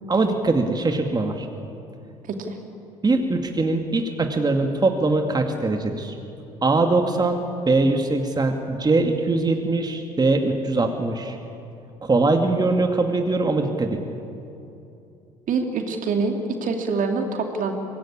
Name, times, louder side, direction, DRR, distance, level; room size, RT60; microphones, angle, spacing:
voice 1, 0.1-1.5 3.0-6.1 6.6-11.4 12.0-14.0, right 3 dB, 25° right, 4 dB, 2.3 m, -22 dB
voice 2, 15.5-17.7, right 4 dB, 50° right, 4 dB, 2.7 m, -25 dB
24.5 x 18.0 x 8.7 m, 2.8 s
figure-of-eight pair, 55°, 17 cm